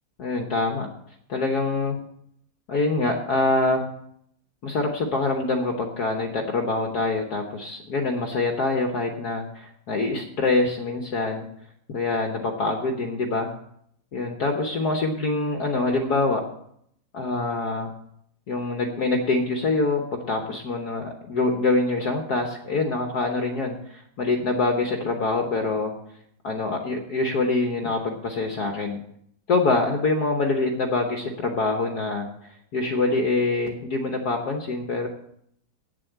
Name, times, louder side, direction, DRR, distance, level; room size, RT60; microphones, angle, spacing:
voice 1, 0.2-0.9 1.3-2.0 2.7-3.8 4.6-11.5 11.9-13.5 14.1-16.4 17.1-17.9 18.5-25.9 26.4-29.0 29.5-32.3 32.7-35.1, left 3 dB, 55° left, 2 dB, 1.5 m, -25 dB
9.1 x 7.6 x 7.9 m, 0.72 s
omnidirectional pair, 2.2 m